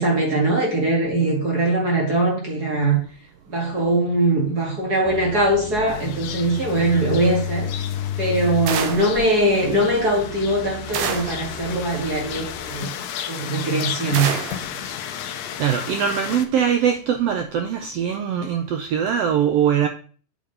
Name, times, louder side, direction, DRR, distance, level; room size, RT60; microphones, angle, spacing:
voice 1, 0.0-3.0 3.5-7.7 8.2-12.9 13.3-14.4 14.8-14.9, right 2 dB, 35° right, 2.3 m, -21 dB
sound 1, 5.1-12.8, left 8 dB, 85° left, 2.4 m, -33 dB
sound 2, 5.9-16.5, left 9 dB, 70° left, 1.8 m, -34 dB
sound 3, 8.7-9.2 10.9-11.5 14.1-14.7, right 7 dB, 65° right, 2.0 m, -27 dB
voice 2, 15.6-19.9, right 8 dB, 85° right, 1.4 m, -22 dB
8.6 x 5.1 x 5.3 m
omnidirectional pair, 3.7 m